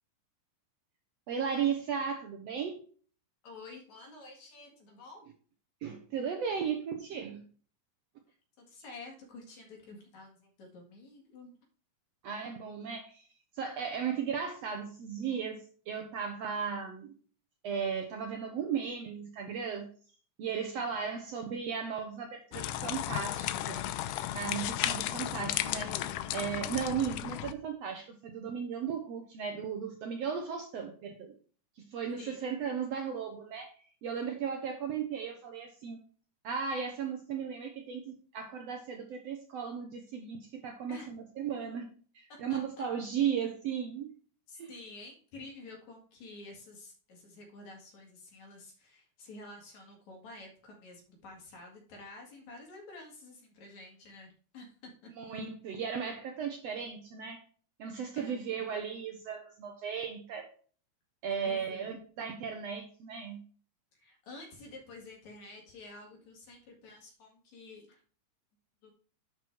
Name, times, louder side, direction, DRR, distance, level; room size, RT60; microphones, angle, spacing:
voice 1, 1.3-2.8 5.8-7.4 12.2-13.3 13.5-17.1 17.6-19.9 20.4-23.8 24.3-26.0 26.3-31.3 31.8-33.7 34.0-36.0 36.4-41.8 42.2-44.1 44.6-44.7 55.2-57.4 57.8-60.5 61.2-63.4, right 7 dB, 65° right, 4 dB, 1.8 m, -36 dB
voice 2, 3.4-5.3 8.6-11.5 32.2-32.4 40.9-41.1 42.3-42.6 44.5-55.1 58.2-58.4 61.4-61.9 63.9-68.0 68.8-68.9, left 2 dB, 60° left, 0 dB, 3.4 m, -50 dB
sound 1, 22.5-27.5, left 13 dB, 85° left, 2.2 m, -34 dB
11.0 x 4.9 x 4.6 m, 0.42 s
omnidirectional pair, 3.7 m